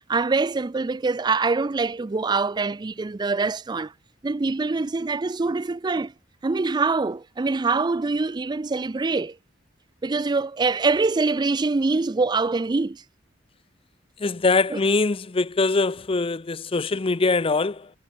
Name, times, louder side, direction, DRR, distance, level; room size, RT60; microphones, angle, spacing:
voice 1, 0.1-3.9 4.2-6.1 6.4-9.4 10.0-13.0 14.7-14.8, right 3 dB, 25° right, 0.4 m, -24 dB
voice 2, 14.2-17.9, left 3 dB, 30° left, 0.6 m, -23 dB
head